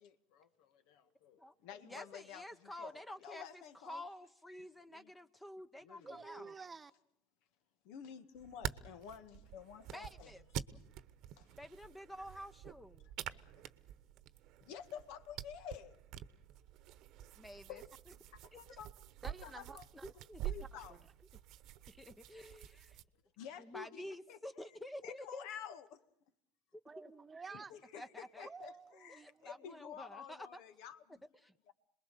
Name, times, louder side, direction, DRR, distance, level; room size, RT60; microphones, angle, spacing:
voice 1, 0.0-4.0 4.6-5.1 5.8-6.5 7.8-10.3 11.4-11.5 13.0-13.6 14.6-16.0 17.7-17.9 18.1-18.9 19.2-19.9 20.5-21.0 23.4-24.4 25.0-26.0 27.7-31.2 31.7-31.8, left 8 dB, 70° left, 1.7 m, -51 dB
voice 2, 1.8-6.5 9.9-10.4 11.6-13.1 17.4-17.8 18.5-18.6 20.3-20.7 22.0-23.0 23.6-25.5 26.7-26.8 28.0-28.5 29.1-30.6 31.4-31.5, left 1 dB, 10° left, 0.9 m, -50 dB
voice 3, 6.0-6.9 19.2-20.0 21.8-22.0 26.8-27.7 28.4-29.5, right 4 dB, 20° right, 1.2 m, -51 dB
sound 1, 8.4-23.0, right 12 dB, 55° right, 1.0 m, -48 dB
27.5 x 21.0 x 6.8 m
supercardioid pair, 100°, 0 cm